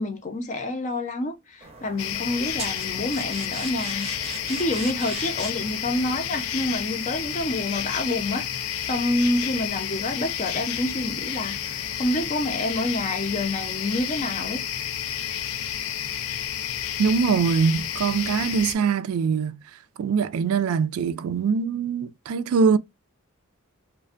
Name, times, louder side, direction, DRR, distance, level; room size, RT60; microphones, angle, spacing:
voice 1, 0.0-4.1 4.5-14.6, left 1 dB, 35° left, 0.6 m, -28 dB
sound 1, 1.6-6.7, right 4 dB, 30° right, 0.6 m, -40 dB
sound 2, 2.0-18.7, left 9 dB, 85° left, 0.4 m, -31 dB
voice 2, 17.0-19.6 20.0-22.8, right 5 dB, 90° right, 0.3 m, -23 dB
2.5 x 2.2 x 2.3 m
head